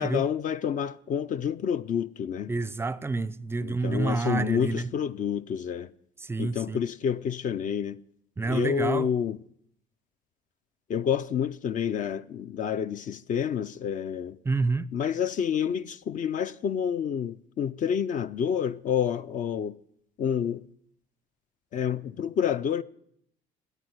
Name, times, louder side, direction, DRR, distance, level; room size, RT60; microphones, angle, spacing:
voice 1, 0.0-2.5 3.6-5.9 6.4-8.0 8.4-9.4 10.9-14.4 14.9-19.8 20.2-20.6 21.7-22.8, left 8 dB, 50° left, 0.5 m, -28 dB
voice 2, 2.5-4.9 6.2-6.8 8.4-9.1 14.4-14.9, right 3 dB, 15° right, 0.4 m, -28 dB
11.0 x 8.8 x 9.3 m
cardioid pair, 110°, 17 cm